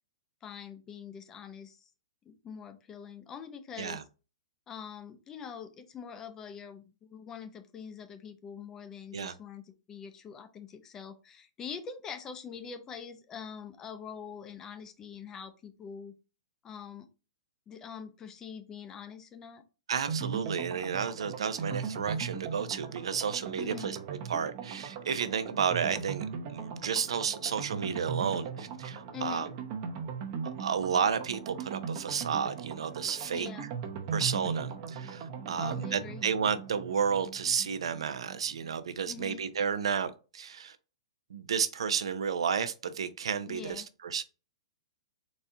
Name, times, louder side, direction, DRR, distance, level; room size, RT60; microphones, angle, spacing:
voice 1, 0.4-1.9 2.2-4.0 4.7-16.1 16.6-17.1 17.7-19.6 23.6-23.9 29.1-29.5 33.3-33.7 35.6-36.3 39.1-39.4 43.5-43.9, left 7 dB, 15° left, 0.4 m, -44 dB
voice 2, 19.9-29.5 30.4-33.5 34.1-40.8 41.3-44.2, right 7 dB, 85° right, 0.5 m, -32 dB
sound 1, 20.1-38.7 39.0-39.1 39.3-39.4, right 6 dB, 35° right, 0.7 m, -39 dB
4.1 x 2.3 x 3.7 m
hypercardioid pair, 155°, 3 cm